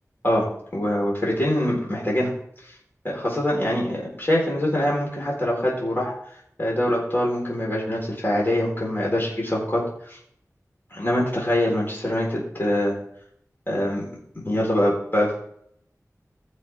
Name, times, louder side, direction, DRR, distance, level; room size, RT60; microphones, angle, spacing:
voice 1, 0.7-2.3 3.0-6.1 6.6-10.2 10.9-12.9 13.7-14.0 14.4-15.3, left 1 dB, 35° left, -4 dB, 4.2 m, -24 dB
15.5 x 6.4 x 3.6 m, 0.67 s
wide cardioid pair, 55°, 6 cm